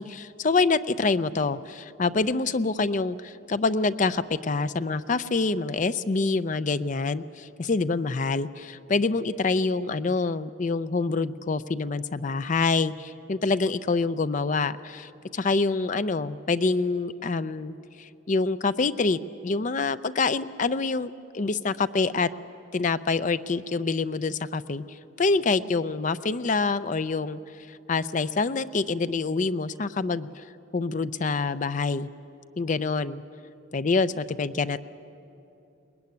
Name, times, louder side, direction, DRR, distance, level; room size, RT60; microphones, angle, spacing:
voice 1, 0.0-22.3 22.7-27.4 27.7-30.4 30.7-32.1 32.6-33.2 33.7-34.8, left 3 dB, 35° left, 13 dB, 0.5 m, -26 dB
22.5 x 20.5 x 9.5 m, 2.8 s
head